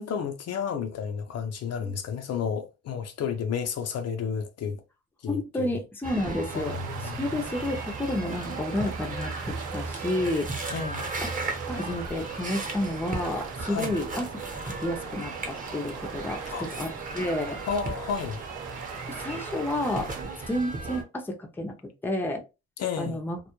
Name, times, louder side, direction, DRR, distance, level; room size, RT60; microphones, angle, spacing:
voice 1, 0.0-4.8 5.2-5.7 6.5-7.2 10.7-11.0 13.7-14.0 16.5-16.7 17.6-18.4 22.8-23.2, left 6 dB, 55° left, 0.5 m, -31 dB
voice 2, 5.3-6.8 7.2-10.7 11.2-11.3 11.7-14.3 14.6-17.6 19.1-20.1 20.5-21.7 22.0-22.4 23.0-23.4, left 1 dB, 5° left, 0.5 m, -30 dB
sound 1, 6.0-21.0, right 3 dB, 25° right, 0.8 m, -36 dB
sound 2, 6.5-20.2, right 7 dB, 85° right, 0.5 m, -41 dB
2.2 x 2.1 x 2.9 m
cardioid pair, 90°, 30 cm